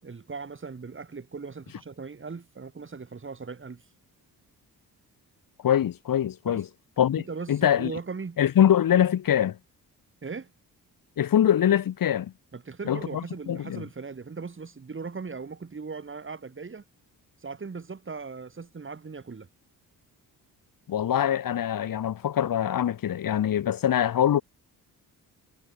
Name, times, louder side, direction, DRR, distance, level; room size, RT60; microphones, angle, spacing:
voice 1, 0.0-3.8 6.4-6.7 7.2-8.4 10.2-10.5 12.5-16.8 17.4-19.5, right 4 dB, 35° right, 6.0 m, -38 dB
voice 2, 5.6-6.7 7.0-7.2 7.5-7.9 8.4-9.6 11.2-12.3 12.8-13.8 20.9-24.4, left 10 dB, 65° left, 1.7 m, -23 dB
cardioid pair, 105°, 36 cm